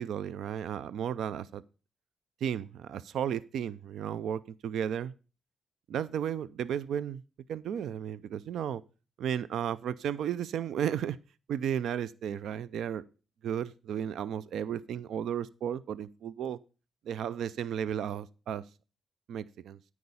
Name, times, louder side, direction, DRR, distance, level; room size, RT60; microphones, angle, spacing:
voice 1, 0.0-1.6 2.4-5.1 5.9-7.2 7.5-8.8 9.2-11.2 11.5-13.0 13.4-16.6 17.1-18.6 19.3-19.8, right 9 dB, 80° right, 18 dB, 0.4 m, -34 dB
9.5 x 4.8 x 6.9 m, 0.34 s
supercardioid pair, 60°, 0 cm